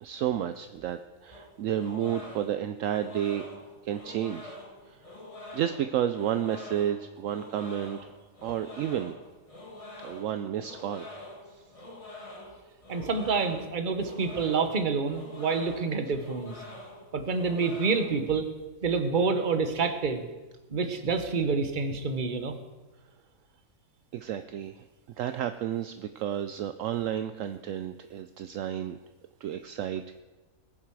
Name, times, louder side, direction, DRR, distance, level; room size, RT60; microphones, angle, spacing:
voice 1, 0.0-3.5 3.8-4.6 4.9-5.0 5.5-8.1 8.4-9.2 10.0-11.1 11.5-11.6 24.1-24.8 25.2-29.0 29.4-30.2, right 10 dB, 70° right, 9 dB, 0.9 m, -31 dB
sound 1, 1.3-18.3, left 1 dB, 25° left, 2.1 m, -46 dB
voice 2, 12.9-16.6 17.1-18.5 18.8-20.3 20.7-22.5, right 4 dB, 40° right, 8 dB, 1.1 m, -28 dB
21.0 x 7.4 x 4.7 m, 1.2 s
omnidirectional pair, 1.5 m